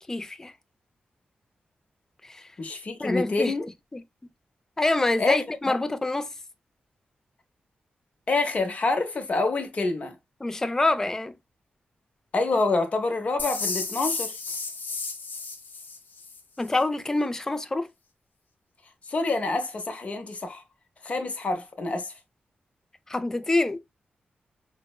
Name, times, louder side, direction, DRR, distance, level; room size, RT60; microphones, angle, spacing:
voice 1, 0.1-0.5 2.2-2.5 3.0-3.5 3.9-4.0 4.8-6.3 10.4-11.3 16.6-17.9 23.1-23.8, left 2 dB, 15° left, 0.3 m, -26 dB
voice 2, 2.6-3.7 5.2-5.8 8.3-10.1 12.3-14.4 19.1-20.6 21.0-22.1, left 3 dB, 40° left, 0.7 m, -27 dB
sound 1, 13.4-16.4, left 4 dB, 65° left, 1.0 m, -32 dB
5.4 x 2.0 x 2.2 m
wide cardioid pair, 155°, 3 cm